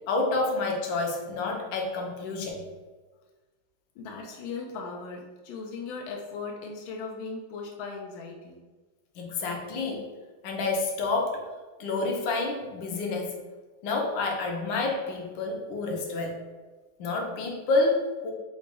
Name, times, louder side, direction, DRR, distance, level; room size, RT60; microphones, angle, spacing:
voice 1, 0.1-2.6 9.2-10.0 10.4-11.4 11.8-13.4 13.8-16.4 17.0-18.3, left 3 dB, 75° left, 1 dB, 1.4 m, -28 dB
voice 2, 3.9-8.7, left 4 dB, 90° left, -1 dB, 1.4 m, -38 dB
4.0 x 2.2 x 4.6 m, 1.3 s
omnidirectional pair, 2.2 m